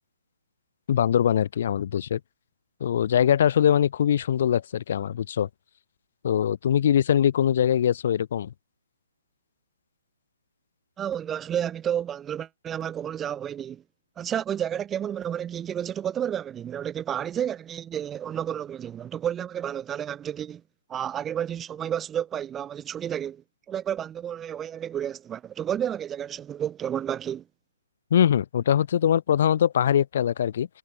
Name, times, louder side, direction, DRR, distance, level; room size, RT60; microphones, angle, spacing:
voice 1, 0.9-2.2 2.8-5.5 6.2-8.5 28.1-30.7, left 9 dB, 50° left, 1.7 m, -22 dB
voice 2, 11.0-13.8 14.2-20.6 20.9-27.4, right 9 dB, 10° right, 2.8 m, -31 dB
hypercardioid pair, 160°, 0 cm